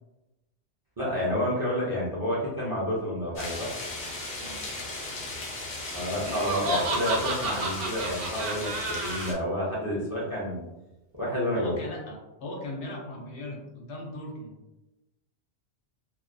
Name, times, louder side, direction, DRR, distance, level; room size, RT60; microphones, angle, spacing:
voice 1, 1.0-3.7 5.9-10.6 11.2-11.7, left 1 dB, 25° right, -7 dB, 0.5 m, -29 dB
sound 1, 3.4-9.3, left 2 dB, 50° left, 0.7 m, -37 dB
Laughter, 6.3-9.3, right 2 dB, 65° right, 0.7 m, -30 dB
voice 2, 11.5-14.5, left 1 dB, 80° left, -1 dB, 0.9 m, -38 dB
2.3 x 2.1 x 2.5 m, 1.0 s
omnidirectional pair, 1.2 m